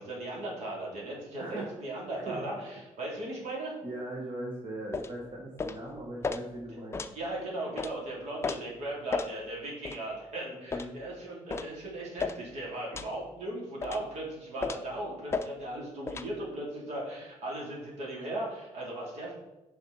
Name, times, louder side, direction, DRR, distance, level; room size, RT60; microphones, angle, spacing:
voice 1, 0.0-3.8 7.1-19.3, right 1 dB, 70° right, -3 dB, 3.4 m, -37 dB
voice 2, 1.4-1.8 2.1-2.4 3.8-7.0 10.5-11.0, right 1 dB, 45° right, -2 dB, 1.7 m, -40 dB
sound 1, 4.9-5.1 5.6-5.8 6.2-6.4 6.9-7.1 7.8-7.9 8.4-8.6 9.1-9.3 9.8-10.0 10.7-10.9 11.5-11.7 12.2-12.4 12.9-13.1 13.8-14.1 14.6-14.9 15.3-15.5 16.1-16.3, left 4 dB, 25° left, 0.5 m, -33 dB
9.7 x 5.8 x 4.3 m, 1.0 s
cardioid pair, 140°, 11 cm